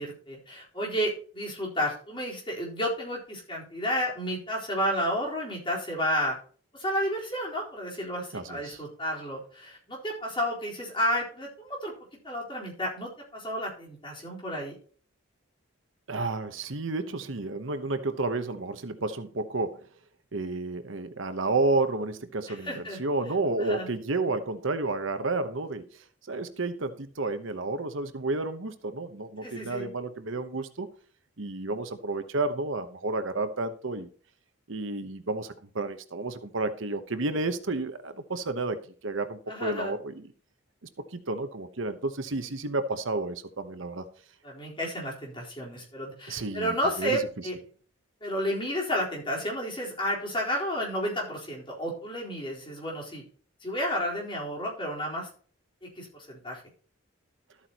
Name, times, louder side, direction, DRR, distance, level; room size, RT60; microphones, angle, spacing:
voice 1, 0.0-6.4 6.7-11.9 12.2-14.7 22.5-23.0 23.6-24.0 29.4-29.9 39.5-39.9 44.4-47.5 48.2-53.2 53.6-55.3 55.8-56.6, equal, 25° left, -3 dB, 4.1 m, -31 dB
voice 2, 8.3-8.8 16.1-19.8 20.3-30.9 31.4-34.1 34.7-40.3 41.1-44.1 46.3-47.2, right 3 dB, 70° right, 10 dB, 1.0 m, -31 dB
13.0 x 8.6 x 3.0 m, 0.44 s
head